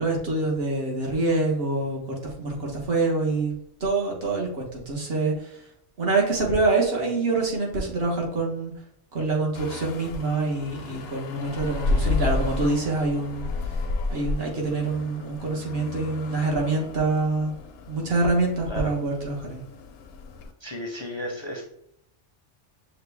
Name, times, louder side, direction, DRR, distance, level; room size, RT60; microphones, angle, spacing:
voice 1, 0.0-5.5 6.0-8.7 9.1-13.5 14.1-17.5 17.9-19.6, right 3 dB, 55° right, -1 dB, 1.3 m, -26 dB
sound 1, 9.5-20.5, left 3 dB, 65° left, 0.7 m, -32 dB
voice 2, 20.6-21.6, equal, 30° left, -1 dB, 0.5 m, -33 dB
6.5 x 2.2 x 3.3 m, 0.73 s
omnidirectional pair, 1.2 m